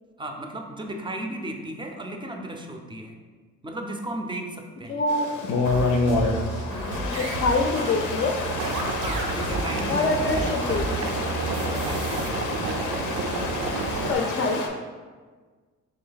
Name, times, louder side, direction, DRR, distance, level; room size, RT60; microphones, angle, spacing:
voice 1, 0.2-3.1 3.6-5.0 9.0-10.5 11.5-12.7, right 1 dB, 15° right, 3 dB, 0.5 m, -35 dB
voice 2, 4.9-5.3 7.0-8.3 9.9-11.2 14.1-14.6, left 3 dB, 40° left, 1 dB, 0.5 m, -25 dB
Stream, 5.1-14.7, left 3 dB, 90° left, 0.6 m, -29 dB
sound 1, 5.7-12.3, right 3 dB, 85° right, 0.8 m, -33 dB
Boiling, 8.5-14.1, right 4 dB, 65° right, 0.5 m, -31 dB
3.3 x 3.2 x 3.9 m, 1.4 s
cardioid pair, 90°, 30 cm